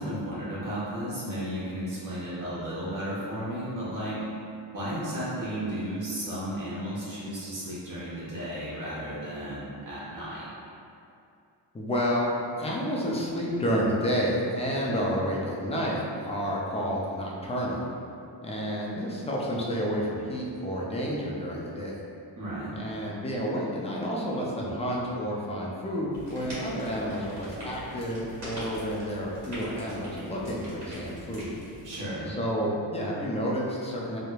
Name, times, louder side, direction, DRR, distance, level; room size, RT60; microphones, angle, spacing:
voice 1, 0.0-4.2 4.6-10.5 22.4-22.8 31.8-32.3, equal, 45° right, -9 dB, 1.0 m, -34 dB
voice 2, 11.7-12.3 12.6-17.9 18.4-22.0 22.8-31.5 32.3-34.2, equal, 15° left, -4 dB, 0.3 m, -30 dB
sound 1, 26.1-32.0, equal, 70° right, 1.4 m, -42 dB
3.1 x 2.0 x 2.2 m, 2.6 s
cardioid pair, 95°, 44 cm